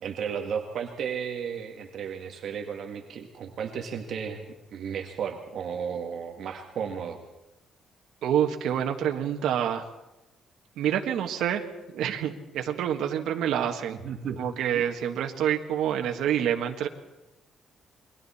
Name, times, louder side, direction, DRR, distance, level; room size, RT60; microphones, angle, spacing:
voice 1, 0.0-4.5 4.7-7.2 13.9-14.4 14.7-14.8, right 7 dB, 55° right, 4 dB, 1.7 m, -34 dB
voice 2, 8.2-9.8 10.8-11.6 11.9-14.0 14.4-16.9, right 9 dB, 75° right, 3 dB, 1.6 m, -27 dB
28.5 x 22.0 x 4.3 m, 0.98 s
cardioid pair, 155°, 0 cm